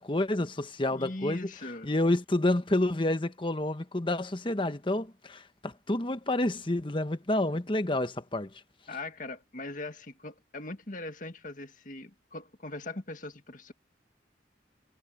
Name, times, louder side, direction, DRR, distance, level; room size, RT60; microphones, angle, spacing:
voice 1, 0.0-1.5 1.8-8.5, left 1 dB, 30° left, 1.1 m, -29 dB
voice 2, 0.9-1.9 8.9-13.7, left 2 dB, 50° left, 2.0 m, -40 dB
head